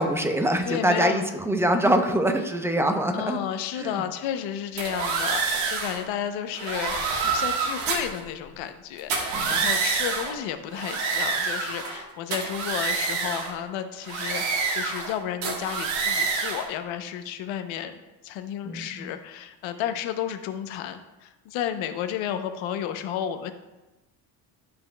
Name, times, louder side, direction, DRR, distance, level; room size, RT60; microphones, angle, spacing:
voice 1, 0.0-3.4 3.8-4.0 9.3-9.6 18.6-19.1, right 1 dB, 5° right, 5 dB, 0.6 m, -24 dB
voice 2, 0.6-1.2 3.1-23.5, left 10 dB, 80° left, 9 dB, 0.8 m, -32 dB
sound 1, 4.8-6.0 6.5-8.2 9.0-10.4 10.7-12.0 12.3-13.5 14.1-15.1 15.4-16.7, right 4 dB, 80° right, 1.5 m, -27 dB
12.0 x 5.2 x 2.3 m, 1.1 s
cardioid pair, 100°, 45 cm